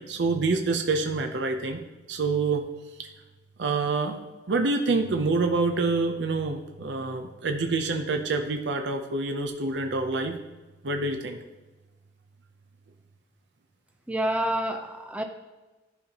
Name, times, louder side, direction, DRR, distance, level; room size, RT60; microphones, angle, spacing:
voice 1, 0.0-1.8 2.1-2.6 3.0-3.1 3.6-4.2 4.5-10.4 10.8-11.4, right 3 dB, 75° right, 5 dB, 0.6 m, -27 dB
voice 2, 14.1-15.2, right 1 dB, 5° right, 5 dB, 0.5 m, -28 dB
11.5 x 4.2 x 2.9 m, 1.2 s
head